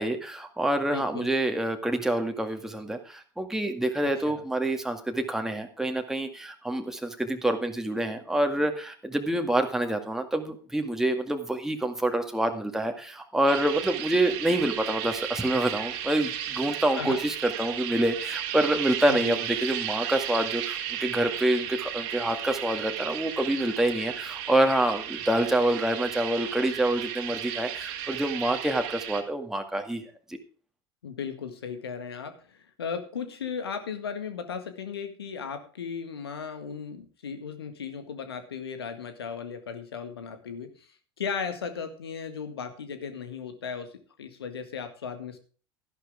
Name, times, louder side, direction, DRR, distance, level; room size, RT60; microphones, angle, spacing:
voice 1, 0.0-30.0, right 1 dB, 5° right, 4 dB, 2.1 m, -27 dB
voice 2, 0.9-1.3 4.3-4.4 17.0-17.2 19.1-19.4 31.0-40.9 41.2-43.9 44.2-45.4, left 6 dB, 80° left, 9 dB, 1.8 m, -36 dB
sound 1, 13.5-29.2, right 10 dB, 60° right, 2.1 m, -34 dB
12.5 x 11.5 x 3.6 m, 0.39 s
figure-of-eight pair, 75°, 13 cm